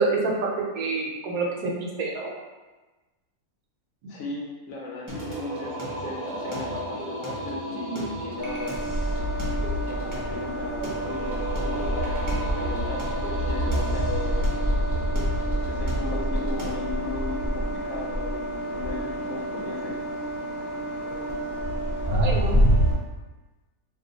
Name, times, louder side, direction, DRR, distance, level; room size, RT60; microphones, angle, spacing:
voice 1, 0.0-2.3 22.1-22.6, right 3 dB, 75° right, -1 dB, 1.0 m, -27 dB
voice 2, 4.1-8.8 9.8-14.5 15.7-19.9, left 3 dB, 70° left, -3 dB, 1.0 m, -36 dB
Singing, 5.1-16.7, right 1 dB, 25° right, 0.4 m, -36 dB
sound 1, 8.4-23.0, equal, 50° left, 0.5 m, -27 dB
2.8 x 2.2 x 3.8 m, 1.2 s
omnidirectional pair, 1.6 m